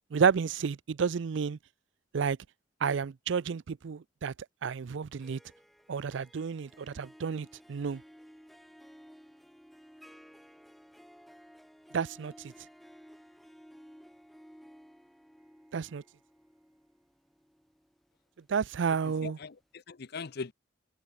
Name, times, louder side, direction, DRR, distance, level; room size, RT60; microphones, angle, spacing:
voice 1, 0.1-1.6 2.1-2.4 2.8-4.3 4.6-5.4 5.9-8.0 11.9-12.5 15.7-16.0 18.5-19.4, right 6 dB, 70° right, 0.4 m, -30 dB
Harp, 5.0-19.0, equal, ahead, 5.1 m, -56 dB
voice 2, 19.0-20.5, left 4 dB, 55° left, 0.7 m, -41 dB
head